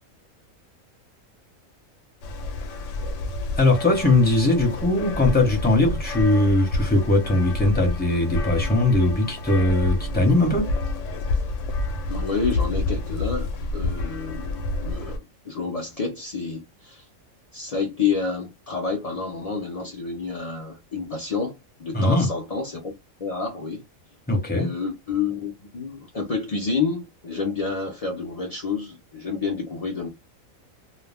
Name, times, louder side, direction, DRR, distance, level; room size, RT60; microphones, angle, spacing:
sound 1, 2.2-15.2, left 2 dB, 70° left, 0.9 m, -29 dB
voice 1, 3.6-10.7 21.9-22.3 24.3-24.7, left 2 dB, 10° left, 0.8 m, -20 dB
voice 2, 12.1-17.1 17.5-22.9 23.2-23.8 24.5-30.1, left 5 dB, 50° left, 0.4 m, -29 dB
2.4 x 2.2 x 3.3 m
omnidirectional pair, 1.5 m